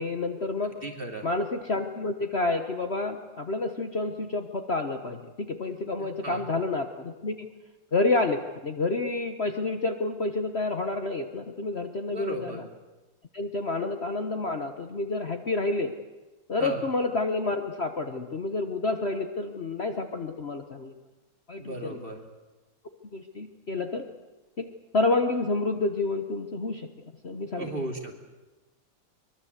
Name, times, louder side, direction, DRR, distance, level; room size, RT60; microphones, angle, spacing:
voice 1, 0.0-0.7 1.2-7.5 7.9-12.7 13.3-15.9 16.5-20.9 21.5-22.0 23.1-24.1 24.6-24.7 24.9-26.9 27.2-27.7, left 3 dB, 40° left, 6 dB, 1.3 m, -29 dB
voice 2, 0.8-1.3 6.0-6.4 12.1-12.6 16.6-16.8 21.6-22.2 27.6-28.1, right 2 dB, 30° right, 2 dB, 3.0 m, -36 dB
23.5 x 22.5 x 8.2 m, 1.1 s
omnidirectional pair, 1.9 m